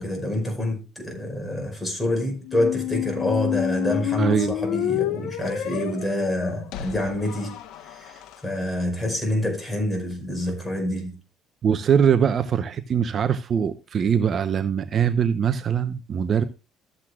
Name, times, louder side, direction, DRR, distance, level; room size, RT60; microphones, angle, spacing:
voice 1, 0.0-11.2, left 1 dB, 15° left, 5.2 m, -27 dB
sound 1, 2.4-8.3, left 12 dB, 75° left, 1.2 m, -29 dB
voice 2, 4.2-4.5 11.6-16.4, right 7 dB, 45° right, 0.8 m, -22 dB
14.0 x 8.1 x 2.4 m
cardioid pair, 95°, 0 cm